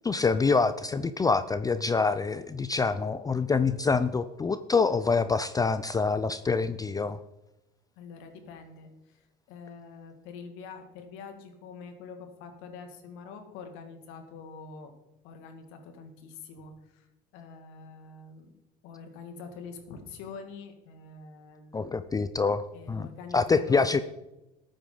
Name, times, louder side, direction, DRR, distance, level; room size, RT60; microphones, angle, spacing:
voice 1, 0.1-7.2 21.7-23.1 23.3-24.0, left 4 dB, 15° left, 13 dB, 0.5 m, -26 dB
voice 2, 8.0-9.2 9.5-14.9 15.2-17.1 17.3-18.5 18.8-21.9 22.7-23.9, left 5 dB, 70° left, 6 dB, 2.2 m, -45 dB
13.5 x 8.9 x 4.0 m, 0.95 s
supercardioid pair, 95°, 21 cm